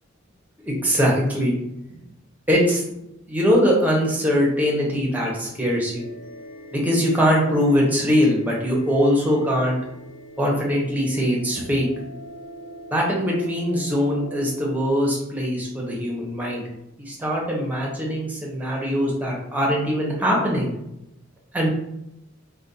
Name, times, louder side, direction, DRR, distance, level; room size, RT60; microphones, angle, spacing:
voice 1, 0.6-1.5 2.5-2.8 3.3-6.1 6.7-9.8 10.4-11.9 12.9-16.6 17.0-20.7 21.5-21.7, equal, 10° right, -3 dB, 0.7 m, -22 dB
sound 1, 6.0-14.9, right 1 dB, 40° left, 0.7 m, -42 dB
2.4 x 2.2 x 3.9 m, 0.87 s
head